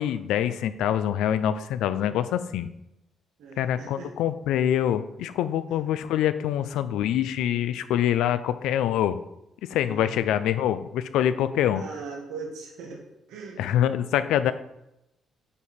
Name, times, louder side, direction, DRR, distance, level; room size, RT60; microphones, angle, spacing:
voice 1, 0.0-2.7 3.6-9.2 9.7-11.8 13.6-14.5, left 10 dB, 90° left, 12 dB, 0.4 m, -25 dB
voice 2, 3.4-4.1 9.9-10.2 11.7-13.0 13.3-13.6, right 4 dB, 90° right, -1 dB, 1.6 m, -39 dB
8.6 x 4.7 x 4.3 m, 0.85 s
cardioid pair, 90°, 0 cm